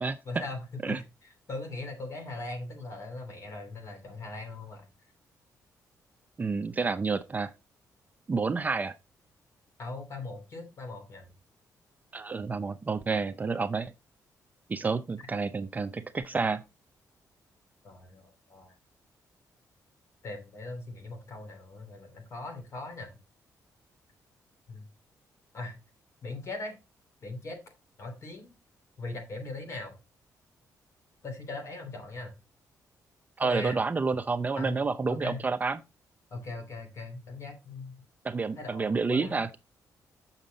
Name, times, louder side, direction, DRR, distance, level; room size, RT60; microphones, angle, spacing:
voice 1, 0.2-4.9 9.8-11.2 17.8-18.7 20.2-23.1 24.7-24.8 25.5-25.8 26.2-26.8 27.2-27.6 28.0-28.5 29.0-30.0 31.2-32.3 33.4-33.8 34.6-34.8 35.1-35.5 36.3-38.0 38.6-39.4, left 2 dB, 45° left, 2.8 m, -40 dB
voice 2, 6.4-7.5 8.3-8.9 12.1-13.9 14.7-16.6 33.4-35.8 38.2-39.6, right 4 dB, 25° right, 0.5 m, -29 dB
7.3 x 6.3 x 3.9 m
cardioid pair, 130°, 7 cm